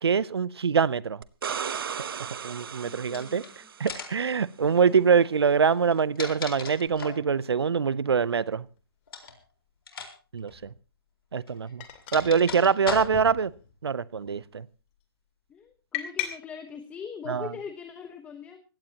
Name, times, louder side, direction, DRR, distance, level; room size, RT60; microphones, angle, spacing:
voice 1, 0.0-1.2 2.4-3.4 3.8-8.6 10.3-10.7 11.3-11.8 12.1-13.5 13.8-14.6 17.3-17.5, right 6 dB, 90° right, 0.7 m, -24 dB
sound 1, 1.2-4.0 6.9-7.0, right 7 dB, 65° right, 1.0 m, -35 dB
voice 2, 2.8-3.7 15.5-18.6, left 6 dB, 10° left, 1.0 m, -41 dB
sound 2, 3.1-3.5 3.9-4.3 5.8-7.3 9.1-9.4 9.9-10.1 10.4-10.5 11.5-13.4, left 5 dB, 70° left, 4.2 m, -37 dB
sound 3, 8.8-8.9 10.5-10.7 11.8-12.2 12.5-12.6 12.9-13.8 14.1-14.5 15.9-16.3, left 12 dB, 30° left, 2.6 m, -36 dB
21.0 x 16.5 x 2.9 m
hypercardioid pair, 155°, 13 cm